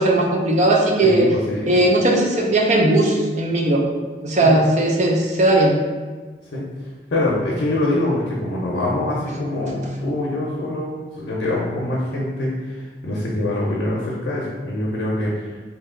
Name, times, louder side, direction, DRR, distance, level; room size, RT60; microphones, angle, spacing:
voice 1, 0.0-1.3 1.6-3.8 4.2-5.7, right 1 dB, 40° right, 0 dB, 0.4 m, -17 dB
voice 2, 1.0-1.8 4.4-4.6 6.5-6.7 7.1-15.5, left 1 dB, 85° left, -4 dB, 0.5 m, -24 dB
2.7 x 2.2 x 3.6 m, 1.4 s
head